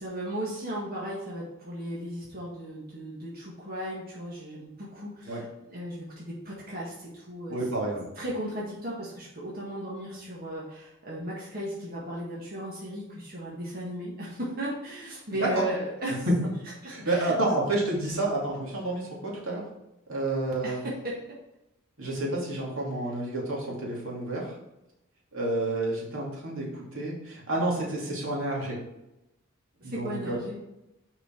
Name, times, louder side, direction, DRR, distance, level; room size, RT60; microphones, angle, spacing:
voice 1, 0.0-7.6 8.2-16.3 16.8-17.3 20.6-21.2 29.8-30.6, right 1 dB, 45° right, -5 dB, 1.8 m, -36 dB
voice 2, 7.5-8.1 15.4-15.5 16.3-16.4 16.9-19.6 20.1-20.8 22.0-24.5 25.3-28.8 29.8-30.3, right 2 dB, 75° right, -3 dB, 2.5 m, -29 dB
6.2 x 5.8 x 4.4 m, 0.92 s
head